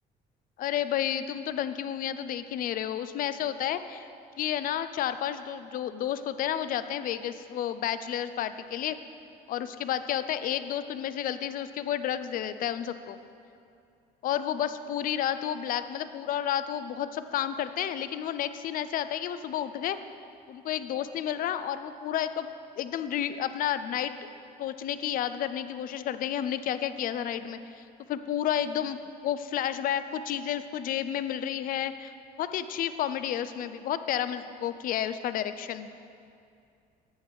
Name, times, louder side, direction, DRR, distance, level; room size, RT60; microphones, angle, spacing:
voice 1, 0.6-4.1 4.4-9.0 9.5-13.2 14.2-20.0 20.5-22.5 22.8-24.2 24.6-27.8 28.1-32.1 32.4-35.9, left 10 dB, 55° left, 12 dB, 0.4 m, -31 dB
8.8 x 7.5 x 3.4 m, 2.5 s
cardioid pair, 110°, 17 cm